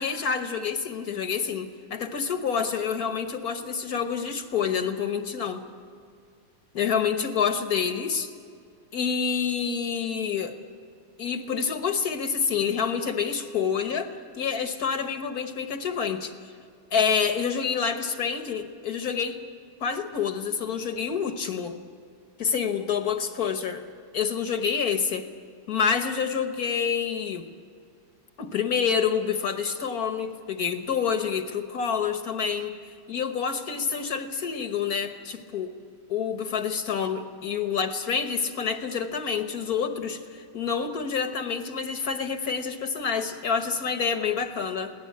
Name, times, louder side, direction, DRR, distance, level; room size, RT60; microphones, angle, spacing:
voice 1, 0.0-5.6 6.7-8.3 8.9-10.6 11.2-14.1 14.4-16.3 16.9-19.4 19.8-21.8 22.4-23.8 24.1-25.2 25.7-27.5 28.4-32.7 33.1-35.7 36.1-44.9, left 6 dB, 50° left, 7 dB, 1.3 m, -27 dB
23.5 x 17.0 x 8.5 m, 2.2 s
omnidirectional pair, 2.4 m